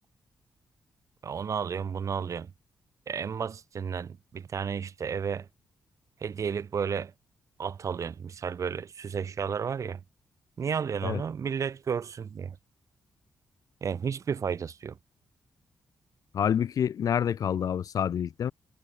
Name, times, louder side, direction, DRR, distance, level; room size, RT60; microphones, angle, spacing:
voice 1, 1.2-2.5 3.1-5.5 6.2-7.1 7.6-10.0 10.6-12.6 13.8-14.9, right 7 dB, 55° right, 1.7 m, -32 dB
voice 2, 16.3-18.5, left 8 dB, 70° left, 1.2 m, -27 dB
cardioid pair, 80°, 6 cm